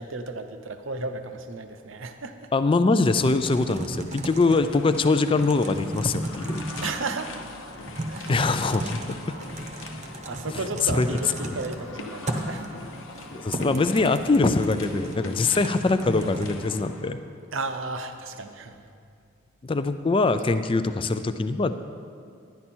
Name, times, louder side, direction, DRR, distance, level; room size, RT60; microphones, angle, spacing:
voice 1, 0.0-2.3 6.8-7.4 8.1-8.3 9.3-9.5 10.3-12.7 17.5-18.8, right 3 dB, 65° right, 7 dB, 0.7 m, -34 dB
voice 2, 2.5-6.6 8.3-9.2 10.5-11.2 11.5-11.6 13.3-17.2 19.6-21.7, left 3 dB, 25° left, 10 dB, 0.3 m, -23 dB
Typing, 3.1-16.5, right 1 dB, 35° right, 0.8 m, -35 dB
sound 1, 4.5-17.1, left 3 dB, 70° left, 0.9 m, -41 dB
11.0 x 10.5 x 4.4 m, 2.3 s
head